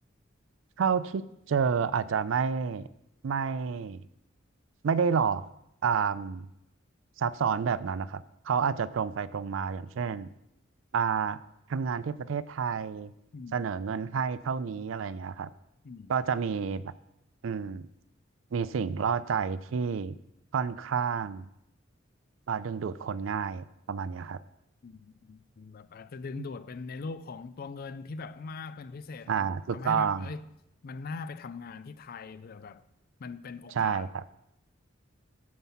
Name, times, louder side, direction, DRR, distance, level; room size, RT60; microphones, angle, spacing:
voice 1, 0.8-2.9 3.2-4.0 4.8-5.4 5.8-6.5 7.2-10.3 10.9-11.4 11.7-13.1 13.5-15.5 16.1-16.8 17.4-17.9 18.5-20.2 20.5-21.5 22.5-24.4 26.4-26.5 29.3-30.3 33.8-34.2, right 6 dB, 75° right, 0.4 m, -29 dB
voice 2, 13.3-13.7 15.8-16.1 24.8-30.5 30.8-32.8 33.2-34.1, left 4 dB, 50° left, 0.4 m, -41 dB
9.4 x 7.2 x 5.7 m
head